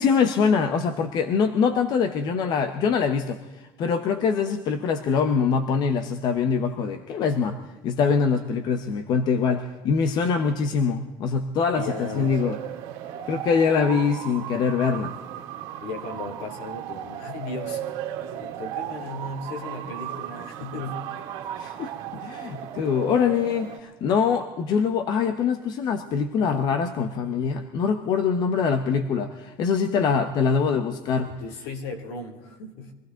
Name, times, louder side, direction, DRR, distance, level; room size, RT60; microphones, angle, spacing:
voice 1, 0.0-7.6 7.8-12.6 13.3-15.1 21.6-21.9 22.2-31.3, left 6 dB, 40° left, 9 dB, 1.0 m, -24 dB
voice 2, 11.7-12.3 15.5-17.8 18.4-21.0 30.0-30.3 31.2-32.9, left 3 dB, 70° left, 4 dB, 2.9 m, -36 dB
sound 1, 11.8-23.8, right 11 dB, 60° right, 2.3 m, -36 dB
23.5 x 15.0 x 3.9 m, 1.1 s
cardioid pair, 150°, 11 cm